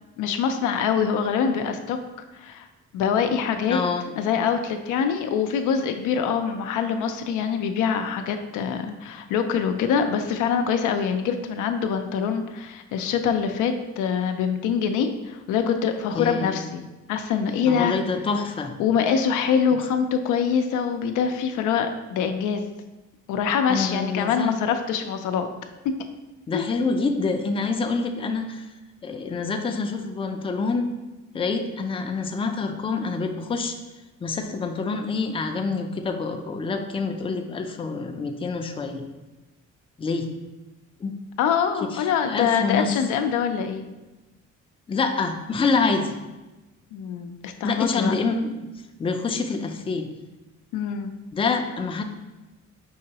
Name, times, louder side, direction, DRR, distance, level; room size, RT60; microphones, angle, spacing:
voice 1, 0.2-2.0 2.4-2.7 2.9-3.8 4.2-18.0 18.8-22.6 23.3-25.5 26.5-26.6 41.4-43.8 46.9-48.1 50.7-51.1, left 7 dB, 85° left, 6 dB, 0.5 m, -24 dB
voice 2, 3.7-4.2 16.1-16.7 17.7-18.7 23.7-24.6 26.5-28.7 29.0-30.9 31.3-33.8 34.2-39.0 40.0-40.3 41.0-41.1 41.8-43.0 44.9-46.1 47.6-48.7 49.0-50.1 51.3-52.0, left 4 dB, 20° left, 5 dB, 0.4 m, -26 dB
5.5 x 2.9 x 2.8 m, 1.1 s
cardioid pair, 90°, 30 cm